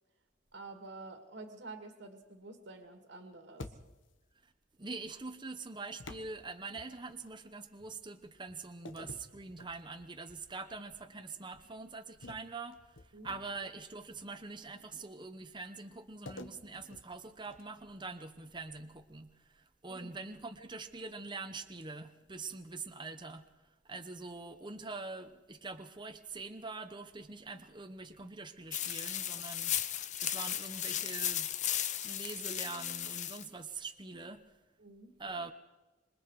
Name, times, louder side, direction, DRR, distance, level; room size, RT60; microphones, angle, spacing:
voice 1, 0.5-3.8 13.1-13.3 19.9-20.1 34.8-35.1, right 3 dB, 65° right, 4 dB, 2.2 m, -49 dB
sound 1, 3.6-4.2 6.0-7.3 8.8-10.2 10.7-10.9 12.2-13.7 16.3-17.9, left 2 dB, 80° left, 1.3 m, -50 dB
voice 2, 4.8-13.0 13.2-23.5 23.8-29.8 30.2-31.5 32.0-34.4 35.2-35.5, right 3 dB, 25° right, 6 dB, 1.0 m, -44 dB
sound 2, 28.7-33.4, left 10 dB, 40° left, 0.7 m, -35 dB
26.5 x 22.0 x 4.8 m, 1.1 s
head